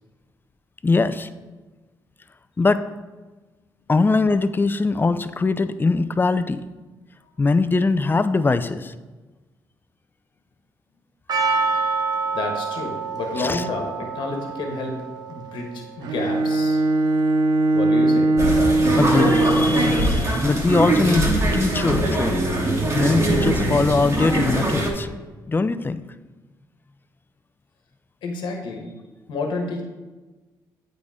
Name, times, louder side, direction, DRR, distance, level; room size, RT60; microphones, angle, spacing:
voice 1, 0.8-1.3 2.6-2.8 3.9-6.6 7.4-8.9 13.4-13.6 19.0-21.2 21.5-22.5 22.9-25.1 25.5-26.0, left 3 dB, 25° left, 12 dB, 0.5 m, -21 dB
Percussion, 11.3-16.5, right 4 dB, 55° right, 1.1 m, -27 dB
voice 2, 12.3-15.0 15.3-16.8 17.7-18.3 28.2-29.0 29.3-29.8, left 3 dB, 75° left, 3 dB, 1.3 m, -30 dB
Bowed string instrument, 16.0-20.2, right 2 dB, 80° right, 0.7 m, -20 dB
sound 1, 18.4-24.9, right 1 dB, 40° right, 2.3 m, -22 dB
8.3 x 5.1 x 4.8 m, 1.2 s
supercardioid pair, 65°, 8 cm